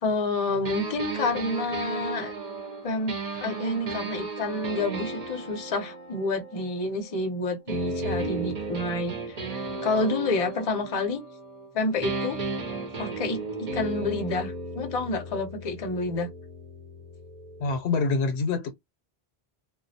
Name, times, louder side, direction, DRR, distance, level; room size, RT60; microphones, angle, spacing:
voice 1, 0.0-2.3 2.8-9.4 9.8-11.2 11.7-12.4 13.0-16.3, left 3 dB, 40° left, 0.6 m, -29 dB
sound 1, 0.7-7.2 7.7-11.7 12.0-17.8, right 3 dB, 45° right, 0.7 m, -35 dB
voice 2, 17.6-18.7, left 4 dB, 90° left, 0.9 m, -25 dB
2.3 x 2.0 x 2.6 m
omnidirectional pair, 1.1 m